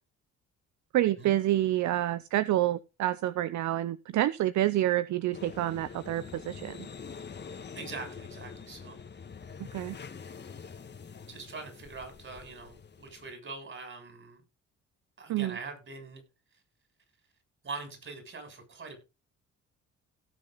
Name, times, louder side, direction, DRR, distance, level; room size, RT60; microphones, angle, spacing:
voice 1, 0.9-6.9 9.6-10.0 15.3-15.6, right 14 dB, 70° right, 16 dB, 0.6 m, -28 dB
sound 1, 5.3-13.3, left 6 dB, 35° left, 1.5 m, -45 dB
voice 2, 7.8-9.0 11.3-14.4 15.2-16.2 17.6-19.0, right 4 dB, 40° right, 5 dB, 7.2 m, -43 dB
17.0 x 6.7 x 4.0 m, 0.28 s
cardioid pair, 90°, 30 cm